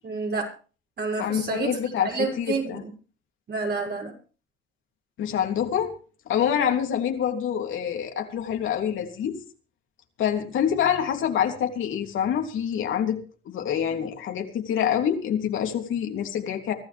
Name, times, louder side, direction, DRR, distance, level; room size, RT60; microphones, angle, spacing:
voice 1, 0.0-0.5 1.0-2.9 3.5-4.1, right 4 dB, 55° right, 1 dB, 6.6 m, -29 dB
voice 2, 1.2-2.1 2.4-2.8 5.2-5.9 6.3-9.3 10.2-13.2 13.4-16.7, left 9 dB, 80° left, 3 dB, 3.2 m, -26 dB
24.0 x 13.5 x 3.5 m, 0.38 s
cardioid pair, 90°, 20 cm